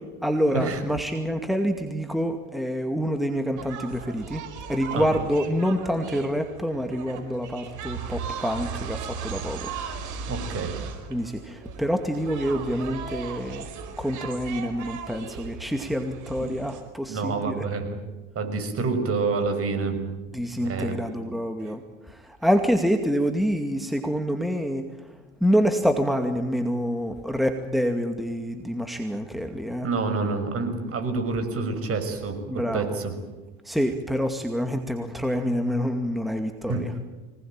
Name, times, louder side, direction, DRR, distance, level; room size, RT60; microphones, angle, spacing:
voice 1, 0.2-4.4 4.7-9.7 11.1-13.7 14.0-17.6 20.3-29.9 32.5-33.0 33.6-36.9, equal, ahead, 6 dB, 2.3 m, -27 dB
sound 1, 3.6-16.8, right 6 dB, 55° right, 5.0 m, -37 dB
voice 2, 10.3-10.8 17.1-18.0 18.3-20.0 20.5-21.0 29.8-33.1 36.7-36.8, right 4 dB, 40° right, 7 dB, 6.2 m, -28 dB
25.0 x 20.0 x 9.0 m, 1.2 s
supercardioid pair, 90°, 36 cm